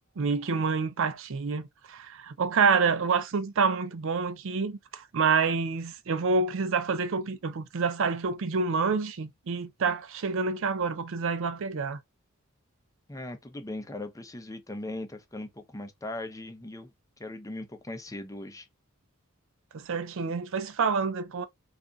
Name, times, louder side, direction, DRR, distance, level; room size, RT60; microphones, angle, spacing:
voice 1, 0.2-12.0 19.7-21.5, right 5 dB, 65° right, 0.5 m, -28 dB
voice 2, 13.1-16.9 17.2-18.7, left 2 dB, 15° left, 0.6 m, -39 dB
3.5 x 2.5 x 3.8 m
head